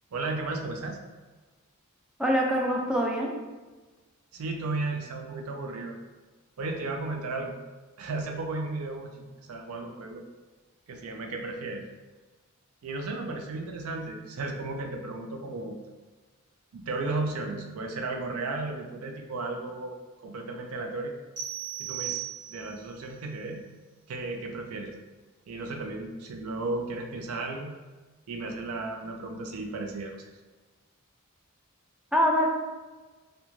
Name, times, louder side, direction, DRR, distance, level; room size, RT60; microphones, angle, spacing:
voice 1, 0.1-1.0 4.3-6.0 6.6-7.5 8.0-9.1 9.5-10.2 10.9-11.8 12.8-15.8 16.7-20.0 20.2-21.1 21.8-22.2 22.5-23.6 24.1-24.9 25.5-27.7 28.3-30.3, right 3 dB, 70° right, 3 dB, 0.4 m, -34 dB
voice 2, 2.2-3.3 32.1-32.5, equal, 5° right, -2 dB, 0.3 m, -24 dB
sound 1, 21.4-22.9, right 12 dB, 40° right, 0.8 m, -36 dB
2.4 x 2.2 x 3.0 m, 1.3 s
head